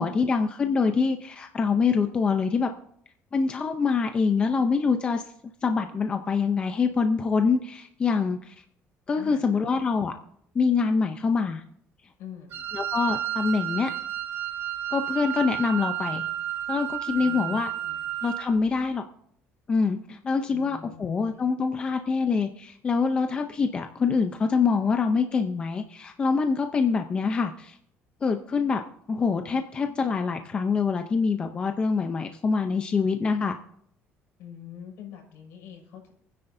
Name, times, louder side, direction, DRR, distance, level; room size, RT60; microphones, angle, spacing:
voice 1, 0.0-2.7 3.3-5.2 5.6-8.5 9.1-10.1 10.5-11.6 12.7-13.9 14.9-16.2 16.7-17.7 18.2-19.0 19.7-27.8 28.2-28.8 29.1-33.6, left 5 dB, 20° left, 6 dB, 0.6 m, -25 dB
voice 2, 9.2-9.6 12.2-12.7 17.2-18.0 20.4-21.5 34.4-36.1, left 9 dB, 75° left, 0 dB, 5.9 m, -44 dB
Wind instrument woodwind instrument, 12.5-18.5, right 11 dB, 50° right, 1.3 m, -31 dB
27.5 x 10.0 x 2.7 m, 0.68 s
cardioid pair, 175°, 5 cm